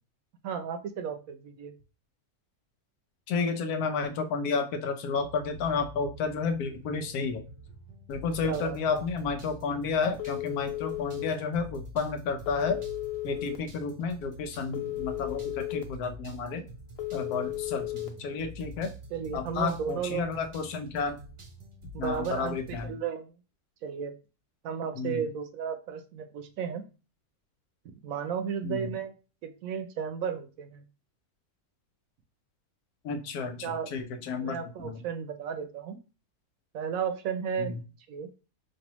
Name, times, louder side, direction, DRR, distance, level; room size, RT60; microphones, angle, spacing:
voice 1, 0.4-1.7 8.4-9.0 19.1-20.3 21.9-23.4 23.8-24.1 24.6-26.8 28.0-29.1 29.4-30.8 33.6-33.9 34.4-36.0 36.7-37.7 38.1-38.3, right 7 dB, 70° right, 9 dB, 1.0 m, -34 dB
voice 2, 3.3-7.4 8.1-12.8 13.2-16.6 17.1-18.9 19.3-21.2 22.0-23.0 25.0-25.2 28.6-28.9 33.0-35.0 37.6-37.8, left 5 dB, 90° left, 7 dB, 1.2 m, -31 dB
sound 1, 5.2-22.9, equal, 30° right, 0.6 m, -46 dB
Telephone, 10.2-11.3 12.5-13.6 14.7-15.8 17.0-18.1, left 17 dB, 55° left, 0.7 m, -34 dB
5.3 x 2.7 x 3.0 m, 0.33 s
omnidirectional pair, 1.6 m